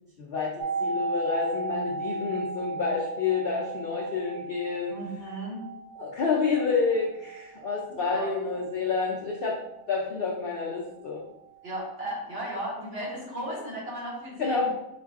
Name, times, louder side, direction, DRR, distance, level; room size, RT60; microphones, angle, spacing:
voice 1, 0.2-5.0 6.0-9.6 9.9-11.2 14.4-14.7, left 4 dB, 55° left, -3 dB, 0.6 m, -28 dB
sound 1, 0.6-10.3 10.6-10.7, right 3 dB, 80° right, 1.3 m, -36 dB
voice 2, 4.9-5.6 8.1-8.3 11.6-14.7, right 1 dB, 40° right, -4 dB, 1.6 m, -35 dB
4.9 x 2.5 x 3.5 m, 0.88 s
omnidirectional pair, 1.6 m